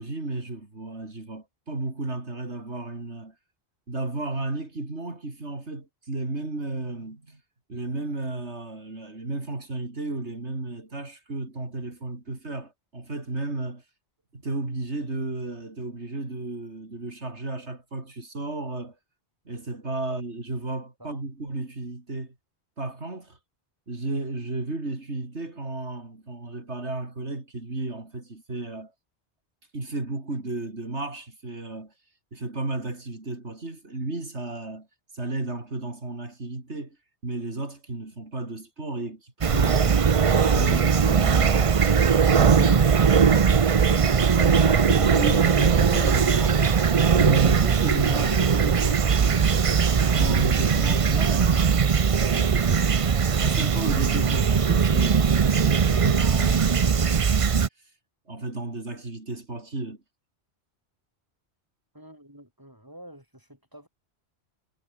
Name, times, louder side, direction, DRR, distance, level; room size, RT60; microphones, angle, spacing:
voice 1, 0.0-3.3 3.9-7.4 7.7-13.8 14.3-19.0 19.5-22.3 22.8-23.4 23.9-28.9 29.7-31.9 32.3-34.9 35.1-37.0 37.2-40.0 40.5-49.7 50.1-52.8 53.4-57.4 58.3-60.0, right 2 dB, 90° right, 4.5 m, -34 dB
Fowl / Chirp tweet, 39.4-57.7, right 6 dB, 35° right, 0.6 m, -20 dB
voice 2, 61.9-63.9, equal, 20° right, 8.1 m, -48 dB
omnidirectional pair, 1.1 m